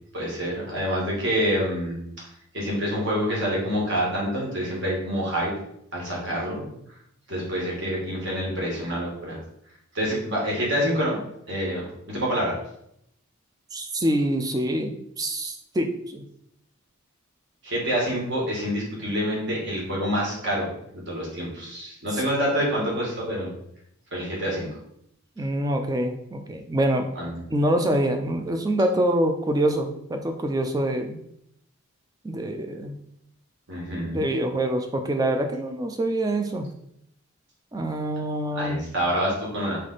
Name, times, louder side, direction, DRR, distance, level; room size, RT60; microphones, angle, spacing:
voice 1, 0.1-2.0 2.5-5.5 5.9-6.7 7.3-9.4 9.9-11.2 11.5-12.5 17.6-23.5 24.1-24.7 27.1-27.4 33.7-34.2 38.5-39.8, equal, 50° right, -4 dB, 1.5 m, -27 dB
voice 2, 13.7-16.2 22.1-22.2 25.4-27.1 27.5-31.2 32.2-33.0 34.1-36.7 37.7-38.8, right 1 dB, 15° right, 5 dB, 0.3 m, -25 dB
3.4 x 3.2 x 3.9 m, 0.75 s
head